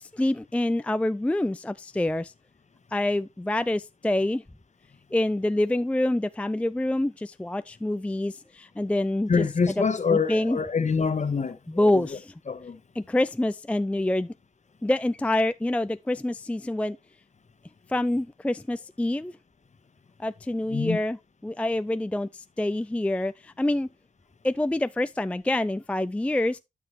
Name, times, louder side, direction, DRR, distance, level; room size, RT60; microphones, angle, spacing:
voice 1, 0.0-2.3 2.9-4.4 5.1-9.8 10.1-10.6 11.7-12.3 13.0-14.3 14.8-17.0 17.9-19.3 20.2-21.2 21.4-23.9 24.4-26.6, left 1 dB, 10° left, 0.4 m, -26 dB
voice 2, 9.3-12.0 12.5-12.8 20.7-21.0, left 5 dB, 45° left, 1.3 m, -26 dB
12.0 x 4.6 x 3.2 m
supercardioid pair, 45°, 16 cm